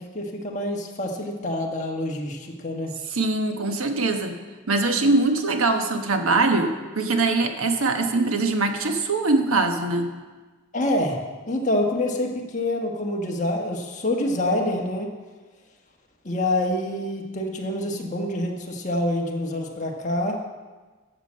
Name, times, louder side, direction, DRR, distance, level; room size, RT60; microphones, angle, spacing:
voice 1, 0.0-3.0 10.7-15.1 16.2-20.4, left 1 dB, 35° left, 1 dB, 1.4 m, -26 dB
voice 2, 3.1-4.4 4.7-10.1, right 3 dB, 85° right, 6 dB, 1.2 m, -22 dB
12.0 x 7.4 x 6.4 m, 1.3 s
head